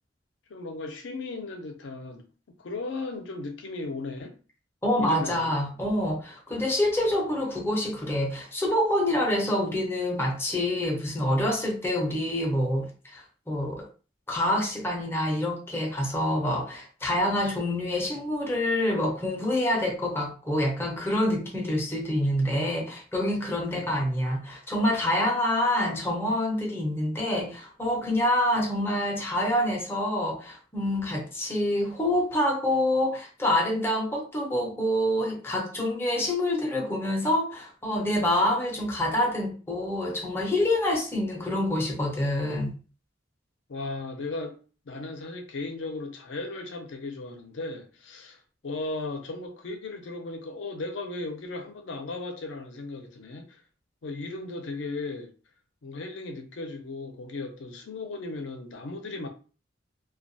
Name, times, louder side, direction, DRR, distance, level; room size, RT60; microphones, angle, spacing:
voice 1, 0.5-2.3 2.6-4.4 5.0-5.6 23.7-23.8 43.7-44.6 44.9-53.6 54.0-55.3 55.8-59.3, left 3 dB, 70° left, 0.5 m, -36 dB
voice 2, 4.8-13.9 14.3-42.7, left 1 dB, 10° left, 0.5 m, -26 dB
2.2 x 2.2 x 2.6 m
head